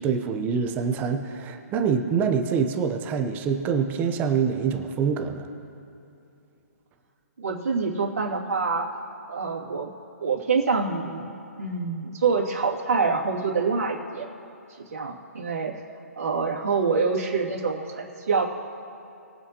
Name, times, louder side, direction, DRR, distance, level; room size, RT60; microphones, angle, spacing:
voice 1, 0.0-5.5, right 6 dB, 20° right, 6 dB, 0.9 m, -25 dB
voice 2, 7.4-8.9 9.3-9.9 10.2-11.3 11.6-14.3 14.8-15.7 16.2-18.4, right 4 dB, 70° right, -3 dB, 2.7 m, -26 dB
22.5 x 8.1 x 3.1 m, 2.7 s
figure-of-eight pair, 135°, 8 cm